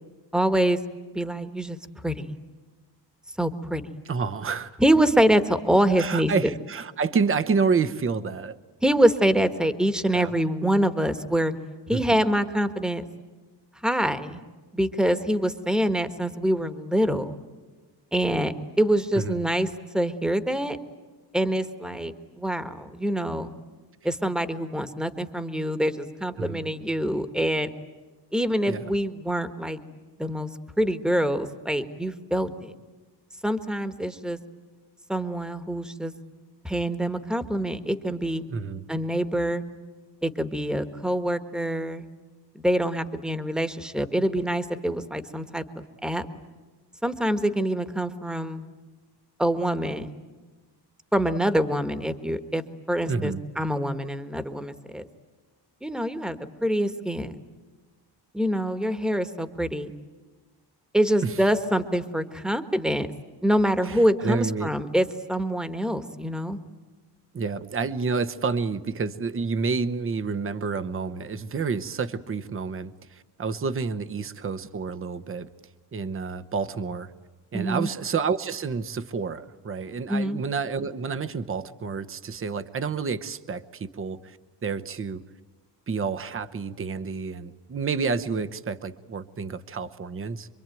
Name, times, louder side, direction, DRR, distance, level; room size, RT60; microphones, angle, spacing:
voice 1, 0.3-0.8 1.1-1.8 2.0-2.3 3.4-3.8 4.8-6.3 8.8-11.5 11.9-13.0 13.8-14.4 14.7-17.4 18.1-19.7 19.9-20.8 21.3-23.5 24.0-27.7 28.3-29.8 30.2-30.5 30.8-32.7 33.4-34.4 35.1-36.1 36.6-38.5 38.9-39.6 40.2-42.0 42.6-45.6 46.0-46.2 47.0-48.6 49.4-50.1 51.1-52.6 52.9-55.1 55.8-57.3 58.3-59.9 60.9-63.1 63.4-66.6 77.5-77.9 80.1-80.4, right 1 dB, ahead, 10 dB, 1.4 m, -25 dB
voice 2, 4.1-4.7 6.0-8.6 10.1-10.3 11.9-12.2 19.1-19.4 26.4-26.7 28.7-28.9 38.5-38.9 53.1-53.4 61.2-61.4 63.8-64.7 67.3-75.5 75.9-77.1 77.5-85.2 85.9-90.5, right 5 dB, 30° right, 11 dB, 0.9 m, -29 dB
26.5 x 23.5 x 9.2 m, 1.3 s
cardioid pair, 135°, 42 cm